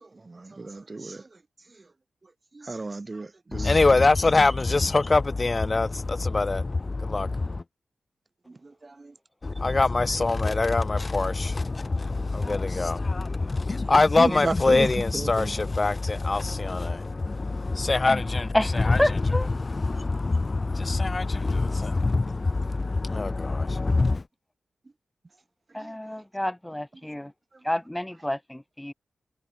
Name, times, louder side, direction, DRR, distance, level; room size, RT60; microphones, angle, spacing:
voice 1, 0.3-1.2 2.6-3.7 8.8-9.1 14.2-14.9 15.1-15.5, right 3 dB, 35° right, 1.9 m, -33 dB
voice 2, 3.5-7.6 9.4-19.0 19.5-24.2, left 3 dB, 35° left, 3.1 m, -24 dB
voice 3, 18.5-19.5 25.7-27.3 27.6-28.9, left 1 dB, 10° left, 6.0 m, -29 dB
wide cardioid pair, 90°, 0 cm